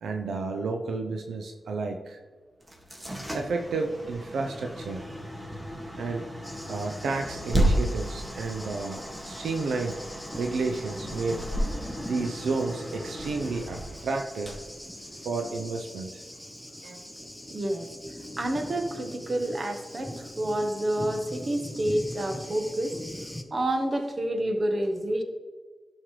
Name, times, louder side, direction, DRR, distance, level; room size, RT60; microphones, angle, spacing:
voice 1, 0.0-2.2 3.3-5.1 6.0-6.3 6.7-10.0 10.3-11.4 12.0-14.6 15.2-16.2 16.8-17.0, right 3 dB, 90° right, 4 dB, 0.6 m, -31 dB
sound 1, 2.6-15.5, right 1 dB, 25° right, 1.8 m, -33 dB
Thunder, 6.4-23.4, equal, 5° left, 1.0 m, -42 dB
voice 2, 17.5-17.9 18.4-22.9 23.5-25.2, right 1 dB, 45° right, 5 dB, 1.2 m, -28 dB
11.5 x 6.3 x 3.2 m, 1.4 s
cardioid pair, 55°, 0 cm